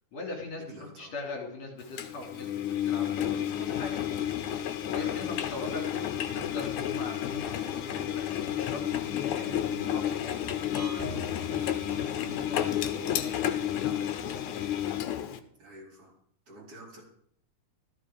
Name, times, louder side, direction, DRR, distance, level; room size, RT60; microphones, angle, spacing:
voice 1, 0.1-4.0 4.9-14.7, left 3 dB, 60° left, 0 dB, 4.5 m, -41 dB
voice 2, 0.7-1.1 4.9-5.3 15.6-16.1 16.5-17.0, right 2 dB, 45° right, -3 dB, 5.5 m, -48 dB
Engine, 2.0-15.4, left 11 dB, 80° left, 2.5 m, -31 dB
sound 1, 10.7-12.7, left 2 dB, 5° left, 7.7 m, -41 dB
15.0 x 14.5 x 5.0 m, 0.64 s
omnidirectional pair, 3.5 m